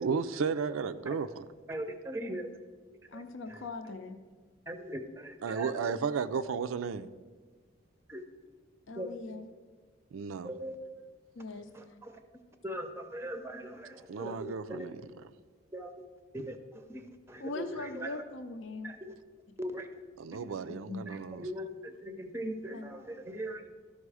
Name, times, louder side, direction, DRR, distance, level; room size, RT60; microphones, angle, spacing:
voice 1, 0.0-1.5 5.4-7.1 10.1-10.5 14.1-15.1 20.2-21.4, right 5 dB, 80° right, 0.4 m, -33 dB
voice 2, 1.7-2.5 3.1-3.2 3.5-3.6 4.7-5.7 8.1-8.2 9.0-9.2 10.4-10.8 11.7-12.2 12.6-14.5 15.7-15.9 16.3-16.6 16.9-18.2 18.8-19.1 19.6-19.9 20.3-20.6 21.1-23.7, right 1 dB, 10° right, 0.5 m, -40 dB
voice 3, 3.1-4.2 8.9-9.5 11.4-11.7 17.4-18.9 20.7-21.0 22.7-23.0, left 3 dB, 65° left, 0.6 m, -41 dB
13.0 x 5.3 x 4.8 m
head